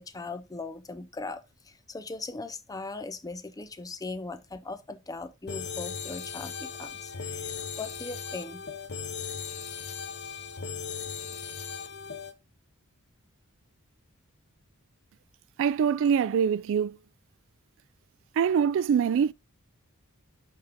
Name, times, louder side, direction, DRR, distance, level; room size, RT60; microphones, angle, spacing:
voice 1, 0.0-8.6, left 3 dB, 15° left, 0.5 m, -39 dB
sound 1, 5.5-12.3, left 6 dB, 50° left, 0.8 m, -37 dB
voice 2, 15.6-17.0 18.4-19.3, right 7 dB, 60° right, 0.3 m, -24 dB
5.8 x 5.2 x 3.4 m
head